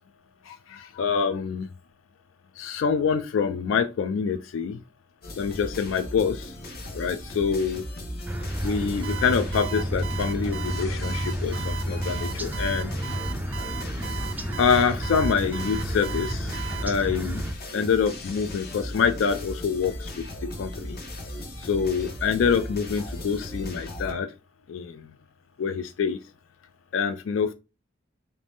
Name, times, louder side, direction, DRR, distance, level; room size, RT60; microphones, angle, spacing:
voice 1, 0.5-1.7 2.6-4.8 5.4-6.5 6.9-7.8 8.6-12.9 14.6-16.6 16.8-17.4 17.7-21.0 21.6-24.3 24.7-25.0 25.6-26.2 26.9-27.5, left 6 dB, 75° left, 9 dB, 0.3 m, -26 dB
sound 1, 5.2-24.1, left 1 dB, 50° left, 0.7 m, -37 dB
sound 2, 8.3-17.5, equal, 10° right, 0.3 m, -31 dB
Alarm, 9.0-16.8, right 9 dB, 80° right, 0.5 m, -37 dB
3.0 x 2.7 x 3.4 m, 0.28 s
head